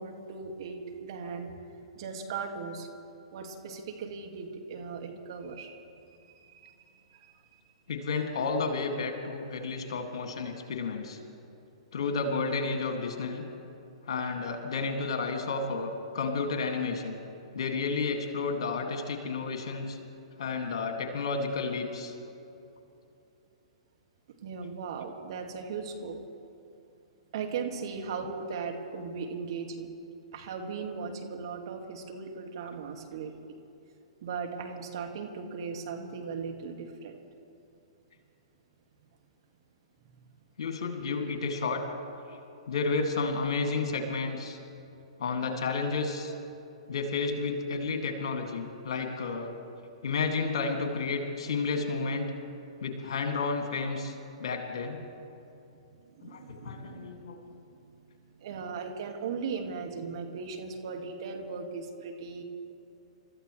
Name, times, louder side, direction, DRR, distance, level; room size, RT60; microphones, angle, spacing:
voice 1, 0.0-1.5 2.0-2.9 3.3-5.7 6.2-6.8 7.1-7.3 24.4-26.2 27.3-29.9 30.3-33.3 34.2-37.1 56.0-57.1 58.4-62.4, right 5 dB, 55° right, 3 dB, 2.0 m, -38 dB
voice 2, 7.9-11.2 11.9-13.4 14.1-17.2 17.5-20.0 20.4-22.1 34.5-34.6 40.6-41.8 42.7-44.6 45.2-46.3 46.9-49.5 50.0-52.3 52.8-55.0 56.2-57.4, left 4 dB, 60° left, 4 dB, 2.2 m, -31 dB
30.0 x 14.0 x 3.2 m, 2.8 s
figure-of-eight pair, 110°, 3 cm